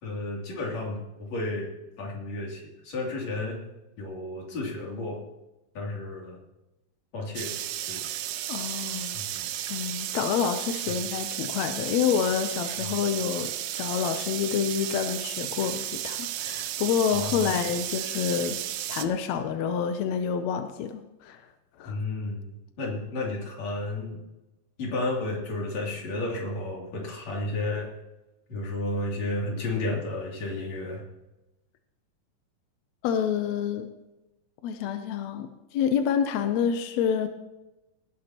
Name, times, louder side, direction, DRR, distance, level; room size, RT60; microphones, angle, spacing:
voice 1, 0.0-1.7 2.0-3.6 4.0-5.2 5.7-6.4 7.1-7.5 7.9-8.0 9.1-9.5 10.9-11.0 12.8-12.9 17.1-17.6 21.9-22.5 22.8-24.2 24.8-27.9 28.5-31.0, left 2 dB, 50° left, -2 dB, 4.2 m, -32 dB
sound 1, 7.4-19.1, right 12 dB, 85° right, 2.5 m, -33 dB
voice 2, 8.5-9.2 9.7-18.6 18.9-21.4 21.8-22.0 33.0-33.9 34.6-37.3, left 7 dB, 75° left, 7 dB, 1.7 m, -28 dB
18.5 x 12.5 x 3.0 m, 0.98 s
omnidirectional pair, 4.0 m